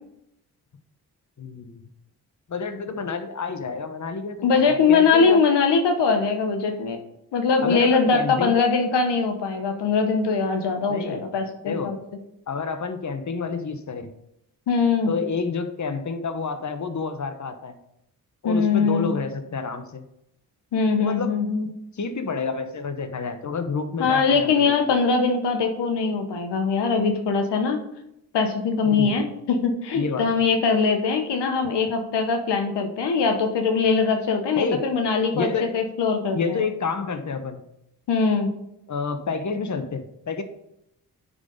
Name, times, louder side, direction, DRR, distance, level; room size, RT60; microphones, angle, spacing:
voice 1, 1.4-1.9 2.5-5.4 7.6-8.6 10.9-11.2 11.6-11.9 12.5-14.1 15.1-17.8 18.4-20.0 21.0-21.3 21.9-24.8 28.8-29.2 29.9-30.5 34.6-34.8 35.3-35.7 36.3-37.6 38.9-40.4, left 5 dB, 45° left, 8 dB, 1.1 m, -29 dB
voice 2, 4.4-7.0 7.3-12.0 14.7-15.1 18.4-19.1 20.7-21.7 24.0-27.8 28.3-36.6 38.1-38.5, left 5 dB, 85° left, 5 dB, 1.1 m, -22 dB
9.6 x 4.0 x 5.1 m, 0.80 s
supercardioid pair, 45°, 40 cm